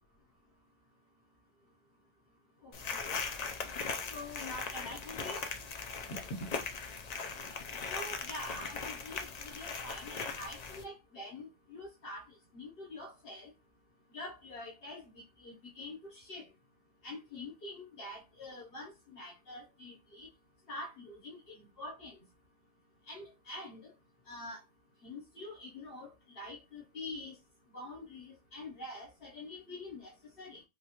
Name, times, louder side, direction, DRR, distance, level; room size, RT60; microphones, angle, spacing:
voice 1, 2.6-3.2 4.1-5.4 6.0-6.2 7.9-13.5 14.1-16.5 17.0-20.3 20.7-22.2 23.1-23.9 24.3-24.6 25.0-27.4 27.7-30.6, left 2 dB, 65° left, 1.2 m, -46 dB
sound 1, 2.7-10.8, left 5 dB, 50° left, 0.6 m, -39 dB
3.7 x 2.3 x 2.9 m
omnidirectional pair, 1.0 m